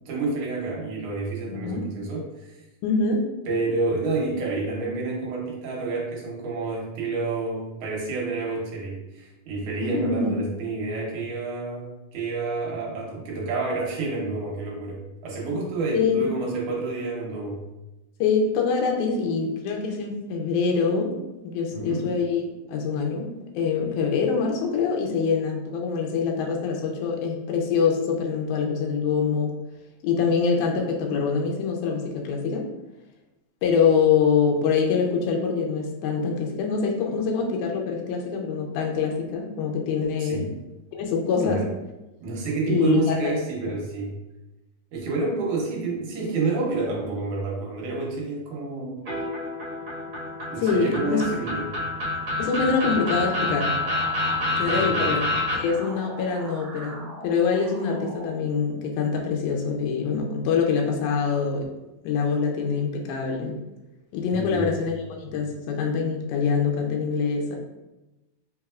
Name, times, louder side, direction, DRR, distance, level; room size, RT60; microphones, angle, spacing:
voice 1, 0.1-2.3 3.5-17.6 21.7-22.1 40.2-40.5 41.4-41.7 42.2-44.1 44.9-49.0 50.5-51.8 54.6-55.2 64.3-64.7, right 3 dB, 75° right, -2 dB, 2.0 m, -29 dB
voice 2, 1.5-1.8 2.8-3.3 9.8-10.4 15.9-16.2 18.2-21.2 21.4-29.5 30.0-32.7 33.6-40.5 40.9-41.7 42.7-43.3 50.6-51.2 52.4-53.7 54.6-55.2 55.6-61.7 62.0-63.6 64.1-67.6, left 5 dB, 75° left, 1 dB, 2.0 m, -24 dB
sound 1, 49.1-55.6, left 2 dB, 45° right, 1.6 m, -27 dB
sound 2, 52.7-58.3, right 2 dB, 90° right, 1.5 m, -41 dB
4.8 x 3.3 x 2.4 m, 1.0 s
omnidirectional pair, 4.0 m